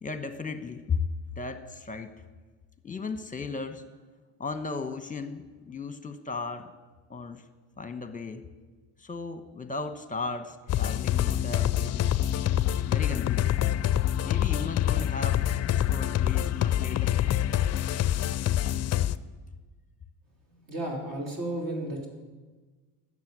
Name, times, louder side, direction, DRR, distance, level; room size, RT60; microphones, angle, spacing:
voice 1, 0.0-1.0 1.4-2.1 2.8-3.8 4.4-6.7 7.1-7.4 7.8-8.4 9.0-12.1 12.8-13.6 14.2-17.2, left 4 dB, 15° left, 9 dB, 1.1 m, -36 dB
sound 1, 10.7-19.2, left 11 dB, 35° left, 0.5 m, -26 dB
voice 2, 20.7-22.1, right 1 dB, 45° right, 0 dB, 3.8 m, -33 dB
12.0 x 7.7 x 8.0 m, 1.3 s
supercardioid pair, 80°, 46 cm